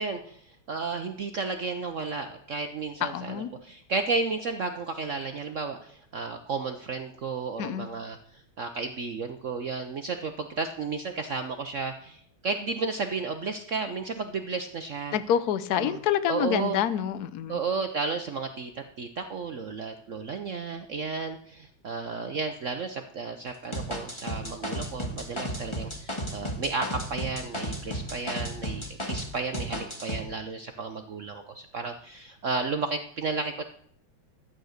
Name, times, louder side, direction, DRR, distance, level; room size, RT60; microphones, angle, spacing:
voice 1, 0.0-15.2 15.7-16.0 16.3-16.8 17.5-18.7 19.0-33.7, right 4 dB, 65° right, 6 dB, 0.7 m, -33 dB
voice 2, 3.0-3.5 7.6-7.9 15.1-17.6, left 10 dB, 60° left, 14 dB, 1.1 m, -27 dB
sound 1, 23.7-29.3 29.5-30.2, equal, 15° left, 1.9 m, -33 dB
12.0 x 8.9 x 6.5 m, 0.65 s
omnidirectional pair, 2.2 m